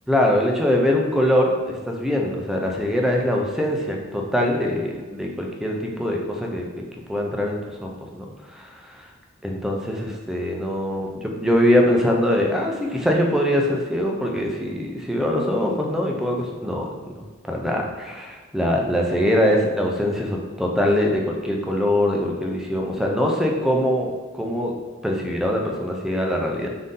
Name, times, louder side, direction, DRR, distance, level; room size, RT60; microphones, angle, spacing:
voice 1, 0.1-6.7 7.1-9.0 9.4-16.9 17.5-24.7 25.0-26.7, left 1 dB, 5° right, 0 dB, 0.4 m, -23 dB
3.7 x 2.6 x 3.7 m, 1.3 s
head